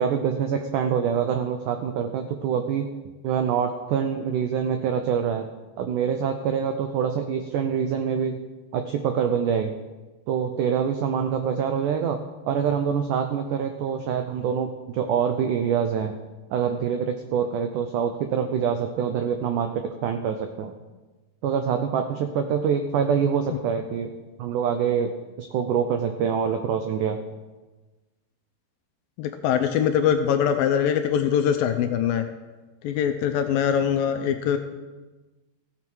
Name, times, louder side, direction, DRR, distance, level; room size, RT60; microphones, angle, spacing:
voice 1, 0.0-2.9 3.2-5.5 5.8-8.4 8.7-9.8 10.3-12.2 12.5-16.2 16.5-20.7 21.4-24.1 24.4-27.2, right 7 dB, 85° right, 6 dB, 1.8 m, -25 dB
voice 2, 29.2-32.3 32.8-34.6, left 8 dB, 80° left, 7 dB, 2.2 m, -22 dB
16.0 x 7.2 x 4.6 m, 1.2 s
omnidirectional pair, 4.5 m